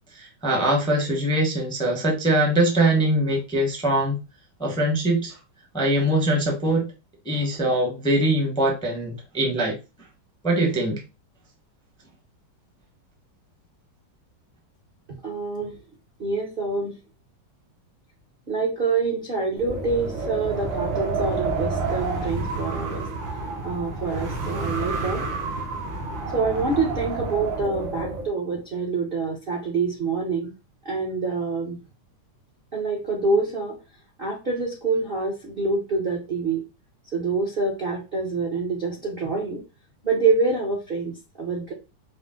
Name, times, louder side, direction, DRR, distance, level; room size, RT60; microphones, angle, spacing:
voice 1, 0.1-4.2 4.6-5.3 5.7-6.9 7.2-9.8 10.4-11.0, right 1 dB, 5° left, 0 dB, 0.5 m, -22 dB
voice 2, 15.2-15.7 16.2-16.9 18.5-23.1 23.6-25.2 26.3-30.5 30.8-31.8 32.7-33.8 34.2-36.6 37.1-39.6 40.0-41.1 41.4-41.7, right 3 dB, 50° right, -1 dB, 0.6 m, -26 dB
Wind, 19.6-28.3, right 3 dB, 70° right, 1.6 m, -29 dB
4.9 x 2.1 x 3.6 m, 0.27 s
omnidirectional pair, 2.3 m